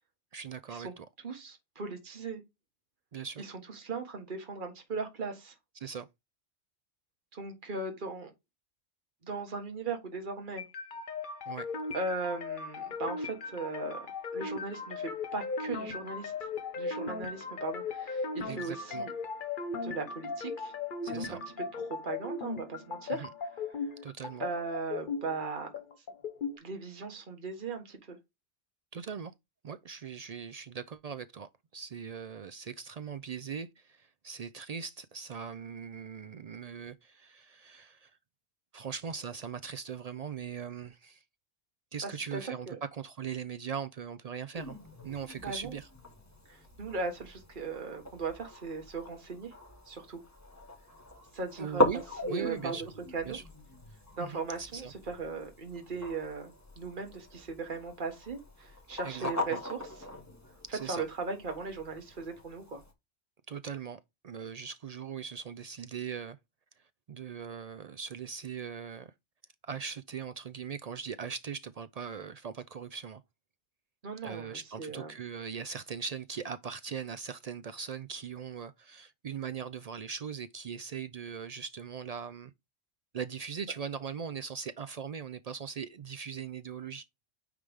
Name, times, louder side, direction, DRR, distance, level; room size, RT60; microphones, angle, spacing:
voice 1, 0.3-1.1 3.1-3.4 5.8-6.1 11.5-11.7 18.5-19.1 21.0-21.4 23.1-23.3 24.0-24.4 28.9-29.3 29.6-38.1 38.7-41.2 41.9-42.7 42.9-44.8 45.0-45.9 51.6-52.0 52.3-52.8 53.2-53.4 54.2-54.9 59.0-59.6 60.7-61.0 63.5-66.4 67.1-69.1 69.6-73.2 74.2-82.5 83.1-87.1, right 7 dB, 65° right, 0.4 m, -40 dB
voice 2, 1.2-2.4 3.4-5.5 7.3-8.3 9.2-10.6 11.9-14.0 14.3-16.5 16.8-19.1 19.8-20.7 21.1-21.4 21.7-23.2 24.4-25.7 26.6-28.2 42.0-42.4 42.7-42.8 45.3-45.8 46.5-49.5 49.9-50.2 51.3-51.8 52.2-52.8 53.1-53.4 54.2-60.1 60.7-62.8 74.0-75.1, right 4 dB, 45° right, 1.6 m, -38 dB
sound 1, 10.6-26.6, left 4 dB, 50° left, 1.0 m, -37 dB
sound 2, 44.5-62.9, left 1 dB, 15° left, 1.3 m, -39 dB
9.5 x 3.3 x 3.6 m
omnidirectional pair, 1.2 m